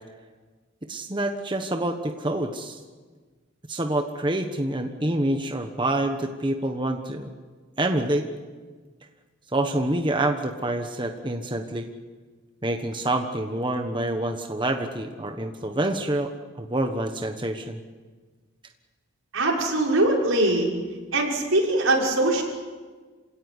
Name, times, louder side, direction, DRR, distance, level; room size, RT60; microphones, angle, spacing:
voice 1, 0.9-2.8 3.7-7.3 7.8-8.3 9.5-11.9 12.6-16.3 16.6-17.8, right 1 dB, 25° right, 4 dB, 1.3 m, -27 dB
voice 2, 19.3-20.7 21.1-22.4, right 2 dB, 80° right, -1 dB, 6.1 m, -22 dB
27.5 x 17.5 x 9.8 m, 1.4 s
head